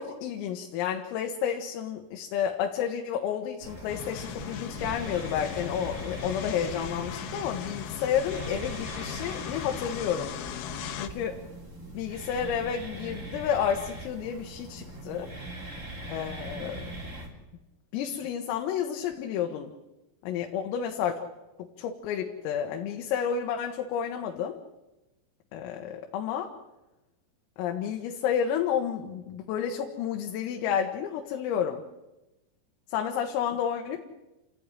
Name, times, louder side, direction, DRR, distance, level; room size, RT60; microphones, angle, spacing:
voice 1, 0.0-10.3 10.9-11.4 12.0-15.3 16.1-16.9 17.9-19.7 20.2-21.2 21.8-24.6 25.5-26.5 27.6-31.8 32.9-34.0, left 8 dB, 85° left, 3 dB, 4.2 m, -30 dB
sound 1, 3.6-17.3, right 1 dB, 20° right, 2.8 m, -41 dB
sound 2, 3.9-11.1, left 9 dB, 65° left, 2.7 m, -38 dB
29.0 x 15.0 x 10.0 m, 1.0 s
omnidirectional pair, 5.9 m